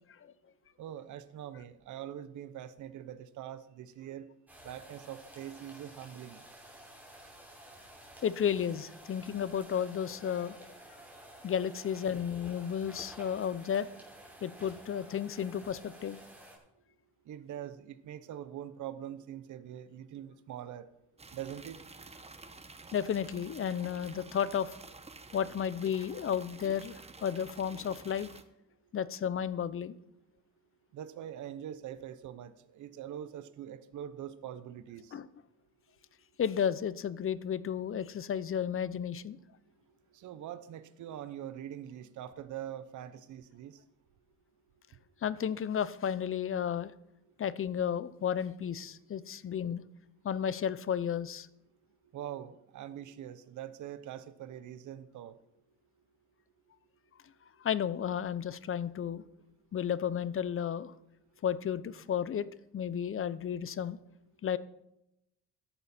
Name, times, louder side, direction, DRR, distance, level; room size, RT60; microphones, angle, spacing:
voice 1, 0.8-4.3 4.6-6.4 17.3-20.9 21.3-21.8 30.9-35.2 40.1-43.8 52.1-55.3, right 10 dB, 75° right, 13 dB, 1.0 m, -43 dB
sound 1, 4.5-16.6, right 1 dB, 5° right, 5.7 m, -52 dB
voice 2, 8.2-10.6 11.4-13.9 14.4-16.2 22.9-24.7 25.3-28.3 28.9-30.0 35.1-35.3 36.4-39.4 45.2-46.9 47.4-49.8 50.2-51.5 57.6-59.2 59.7-60.9 61.4-62.5 62.7-64.0 64.4-64.6, left 8 dB, 45° left, 17 dB, 0.7 m, -33 dB
sound 2, 21.2-28.4, right 3 dB, 20° right, 1.2 m, -51 dB
14.0 x 11.0 x 4.4 m, 0.83 s
cardioid pair, 90°, 30 cm